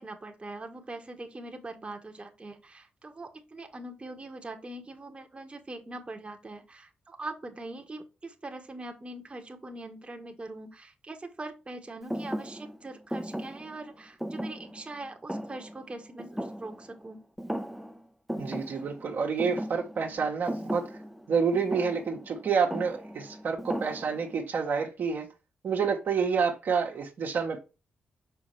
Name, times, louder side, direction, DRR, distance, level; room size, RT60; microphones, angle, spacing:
voice 1, 0.0-17.2, right 2 dB, 30° right, 1.5 m, -42 dB
Thump thud, 12.1-17.1 17.4-18.0 18.3-24.4, equal, ahead, 1.0 m, -37 dB
voice 2, 18.4-20.9 21.3-25.3 25.6-27.6, right 5 dB, 65° right, 1.7 m, -28 dB
6.3 x 5.7 x 3.3 m
hypercardioid pair, 40°, 4 cm